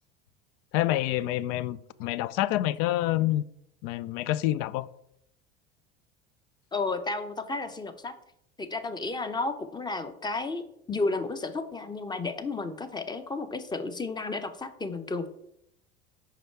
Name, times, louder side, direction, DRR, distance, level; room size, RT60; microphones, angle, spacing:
voice 1, 0.7-3.4 3.8-4.9, left 15 dB, 65° left, 0.4 m, -27 dB
voice 2, 6.7-8.1 8.6-15.3, left 3 dB, 15° left, 0.7 m, -32 dB
5.7 x 5.0 x 4.5 m
hypercardioid pair, 80°, 30 cm